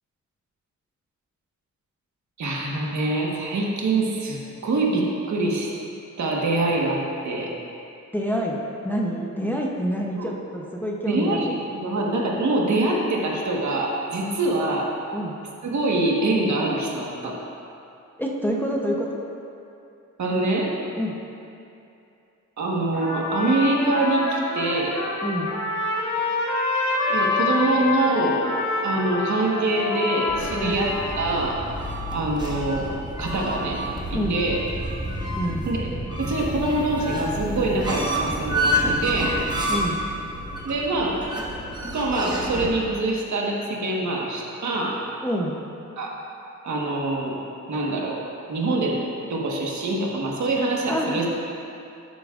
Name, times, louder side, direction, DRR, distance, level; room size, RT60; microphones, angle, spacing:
voice 1, 2.4-5.7 6.2-7.5 10.1-10.3 11.1-14.9 15.6-17.4 20.2-20.7 22.6-25.0 27.1-28.4 28.8-31.6 32.1-33.8 34.1-34.6 35.7-35.9 36.2-39.4 40.6-41.2 41.9-45.0 46.0-46.1 46.6-47.4 47.7-48.2 48.5-51.3, right 2 dB, 65° right, -2 dB, 1.4 m, -24 dB
voice 2, 8.1-11.5 15.1-15.4 18.2-19.1 21.0-21.2 25.2-25.5 30.6-30.8 34.1-34.4 35.4-35.7 39.7-40.0 45.2-45.6 50.9-51.2, equal, 5° left, -2 dB, 0.7 m, -27 dB
Trumpet, 22.9-31.4, left 3 dB, 75° left, 2.1 m, -27 dB
sound 1, 30.3-42.7, equal, 15° right, 1.1 m, -29 dB
12.0 x 8.5 x 2.5 m, 2.7 s
wide cardioid pair, 135°, 31 cm